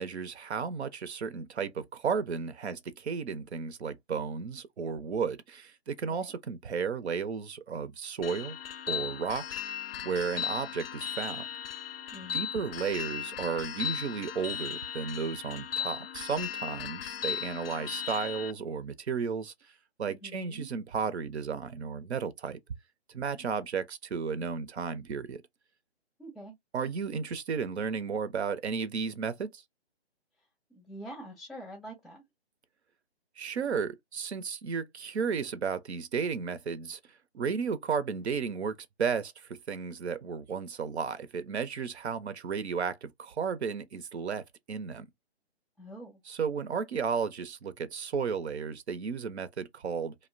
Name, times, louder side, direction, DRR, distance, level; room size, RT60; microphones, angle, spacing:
voice 1, 0.0-8.6 8.9-9.4 10.0-11.4 12.3-19.5 20.0-22.6 23.1-25.4 26.7-29.6 33.4-37.0 37.3-38.7 39.0-45.1 46.3-50.1, right 6 dB, 75° right, 0.7 m, -33 dB
sound 1, 8.2-18.5, left 9 dB, 60° left, 0.5 m, -37 dB
voice 2, 12.1-12.5 20.1-20.7 26.2-26.5 30.7-32.2 45.8-46.2, right 1 dB, ahead, 0.3 m, -45 dB
2.6 x 2.1 x 2.4 m
hypercardioid pair, 155°, 33 cm